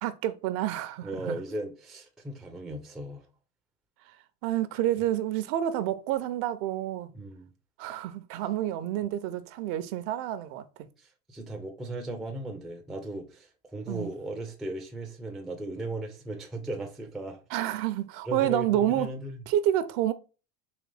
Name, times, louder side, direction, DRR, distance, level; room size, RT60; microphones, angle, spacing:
voice 1, 0.0-1.4 4.4-7.1 7.8-10.6 13.9-14.1 17.5-19.1 19.5-20.1, right 12 dB, 55° right, 0.6 m, -29 dB
voice 2, 1.0-3.3 7.1-7.5 11.0-17.4 18.3-19.4, right 1 dB, ahead, 0.4 m, -37 dB
4.0 x 2.9 x 3.2 m
supercardioid pair, 110°, 48 cm